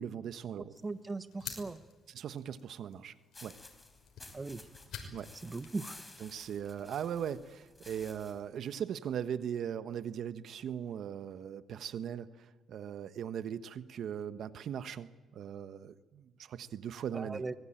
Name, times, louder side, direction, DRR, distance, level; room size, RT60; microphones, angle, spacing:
voice 1, 0.0-0.7 2.1-3.1 3.4-3.6 5.1-5.3 6.2-17.4, right 8 dB, 70° right, 12 dB, 1.2 m, -39 dB
sound 1, 0.7-7.1, left 7 dB, 75° left, 5.8 m, -51 dB
voice 2, 0.8-1.8 4.3-4.6 5.4-6.0 17.1-17.5, right 3 dB, 25° right, 12 dB, 1.1 m, -38 dB
sound 2, 3.3-8.5, left 2 dB, 20° left, 4.3 m, -54 dB
24.5 x 21.0 x 9.1 m, 1.2 s
cardioid pair, 90°, 0 cm